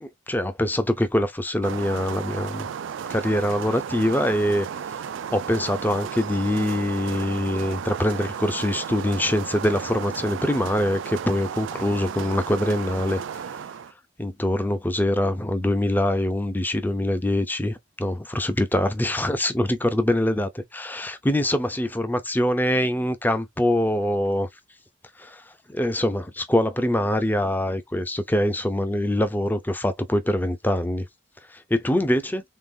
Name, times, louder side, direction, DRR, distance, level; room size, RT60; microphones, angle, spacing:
voice 1, 0.0-2.7 3.1-4.7 5.3-13.4 14.2-24.5 25.2-25.4 25.7-31.1 31.5-32.4, left 1 dB, 10° left, 0.6 m, -24 dB
sound 1, 1.6-13.9, right 7 dB, 75° right, 0.3 m, -34 dB
3.8 x 3.5 x 2.6 m
head